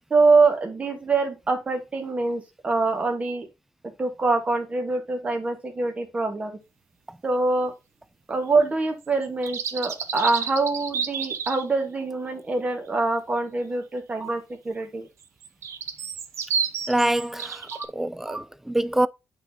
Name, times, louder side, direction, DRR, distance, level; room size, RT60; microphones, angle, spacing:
voice 1, 0.1-3.5 4.0-6.5 7.2-7.7 8.3-15.1 17.7-17.9 18.3-18.4, right 3 dB, 25° right, 1.4 m, -24 dB
sound 1, 9.2-11.6 15.2-17.9, right 6 dB, 75° right, 0.9 m, -30 dB
voice 2, 16.9-19.1, right 1 dB, 5° right, 0.3 m, -25 dB
8.8 x 4.0 x 2.7 m
cardioid pair, 140°, 5 cm